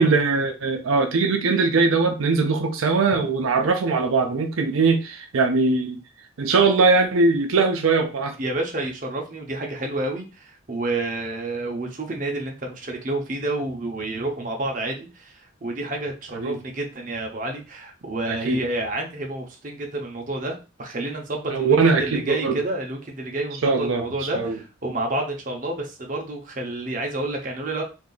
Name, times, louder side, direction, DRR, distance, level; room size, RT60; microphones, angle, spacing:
voice 1, 0.0-6.0 6.4-8.4 16.3-16.6 18.5-18.6 21.5-22.6 23.6-24.6, right 4 dB, 85° right, 4 dB, 0.5 m, -21 dB
voice 2, 8.4-27.8, right 2 dB, 40° right, 2 dB, 0.6 m, -29 dB
2.6 x 2.3 x 3.8 m, 0.32 s
head